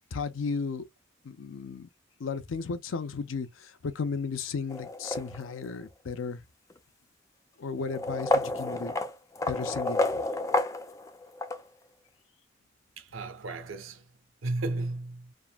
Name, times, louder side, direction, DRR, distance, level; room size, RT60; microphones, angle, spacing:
voice 1, 0.1-0.9 1.2-1.9 2.2-6.4 7.6-8.9 9.5-10.2, left 5 dB, 80° left, 0.5 m, -34 dB
sound 1, 4.7-5.7 6.7-6.8 7.8-11.6, left 2 dB, 15° left, 0.3 m, -30 dB
voice 2, 13.0-14.1 14.4-15.3, right 2 dB, 80° right, 0.6 m, -34 dB
3.5 x 2.1 x 2.3 m
head